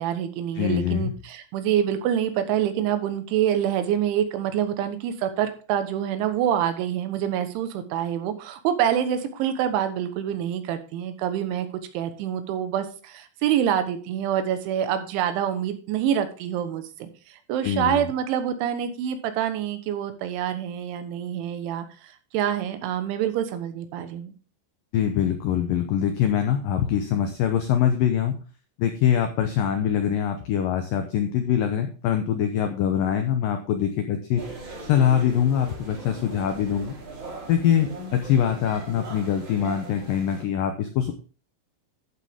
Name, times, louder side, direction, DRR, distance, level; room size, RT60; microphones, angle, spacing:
voice 1, 0.0-11.7 12.0-17.1 17.5-24.3, right 10 dB, 90° right, 9 dB, 3.6 m, -26 dB
voice 2, 0.6-1.1 17.6-18.1 24.9-28.4 28.8-34.4 34.9-36.9 37.5-41.1, left 9 dB, 90° left, 6 dB, 1.9 m, -23 dB
sound 1, 34.4-40.4, right 2 dB, 35° right, 3.8 m, -39 dB
11.5 x 7.8 x 3.6 m, 0.38 s
omnidirectional pair, 5.3 m